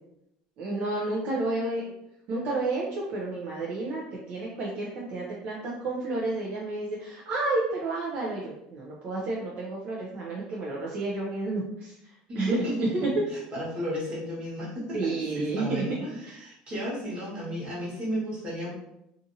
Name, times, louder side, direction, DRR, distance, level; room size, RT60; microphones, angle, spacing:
voice 1, 0.6-1.9 2.3-12.6 12.9-13.1 14.9-15.8 16.2-16.4, right 2 dB, 55° right, -4 dB, 0.6 m, -31 dB
voice 2, 12.3-12.9 13.5-18.7, equal, 30° right, -6 dB, 1.3 m, -33 dB
2.7 x 2.5 x 2.6 m, 0.81 s
cardioid pair, 135°, 3 cm